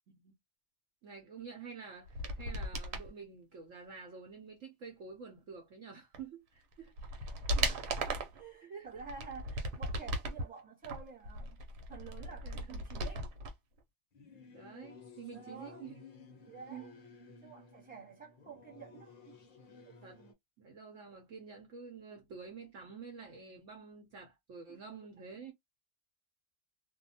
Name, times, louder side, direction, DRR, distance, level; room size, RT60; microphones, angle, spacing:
voice 1, 1.0-7.5 8.6-9.0 12.4-12.8 14.5-15.9 16.7-16.9 20.0-20.2 20.6-25.5, right 5 dB, 60° right, 1.0 m, -49 dB
sound 1, 2.1-3.1 6.1-6.2 6.7-8.4 9.0-10.4 10.8-13.5 13.8-13.9, right 1 dB, 90° right, 1.3 m, -37 dB
voice 2, 7.5-7.9 8.3-11.6 11.9-13.3 15.3-15.9 16.4-16.9 17.4-19.4 19.8-20.0 24.7-24.9, right 5 dB, 5° right, 1.1 m, -50 dB
Singing / Musical instrument, 14.1-20.3, left 4 dB, 50° left, 0.6 m, -55 dB
2.6 x 2.3 x 2.7 m
omnidirectional pair, 1.7 m